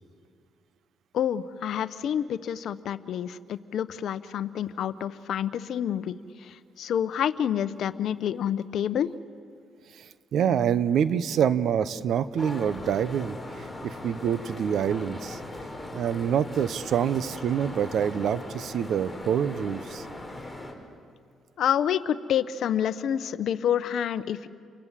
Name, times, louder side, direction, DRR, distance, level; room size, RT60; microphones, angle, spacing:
voice 1, 1.1-6.1 6.4-9.1 21.6-24.5, left 9 dB, 70° left, 14 dB, 0.9 m, -28 dB
voice 2, 10.0-15.4 15.9-20.0, right 8 dB, 70° right, 14 dB, 0.9 m, -26 dB
sound 1, 12.4-20.7, left 1 dB, 5° left, 4.7 m, -39 dB
29.5 x 23.5 x 7.5 m, 2.2 s
cardioid pair, 90°, 0 cm